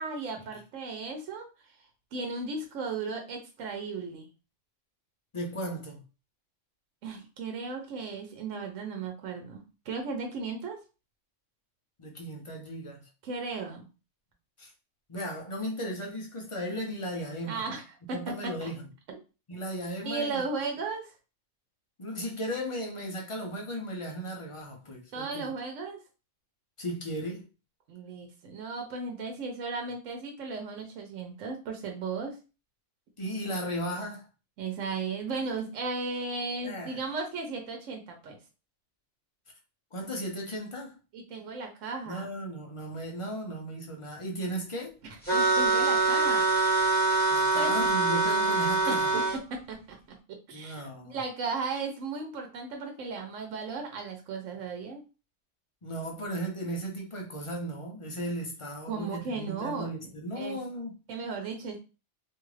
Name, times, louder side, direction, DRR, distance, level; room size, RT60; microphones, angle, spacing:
voice 1, 0.0-1.5 2.1-4.3 7.0-9.6 9.9-10.8 13.2-13.8 17.5-17.8 18.1-18.2 18.4-18.7 19.1-19.2 20.0-21.1 25.1-26.0 27.9-32.4 34.6-38.4 41.1-42.3 45.0-46.5 47.5-47.7 48.9-49.2 49.5-50.0 50.5-55.0 58.9-59.9 60.3-60.6 61.1-61.8, right 4 dB, 85° right, 1.0 m, -35 dB
voice 2, 5.3-6.0 12.0-13.1 14.6-14.7 15.1-17.7 18.1-18.8 19.5-20.4 22.0-25.5 26.8-27.5 33.2-34.3 36.6-37.1 39.9-41.0 42.1-45.0 47.3-49.1 50.5-51.2 55.8-61.0, equal, 40° left, 0.4 m, -36 dB
sound 1, 45.3-49.4, right 3 dB, 10° left, 1.0 m, -24 dB
2.6 x 2.4 x 3.1 m
omnidirectional pair, 1.3 m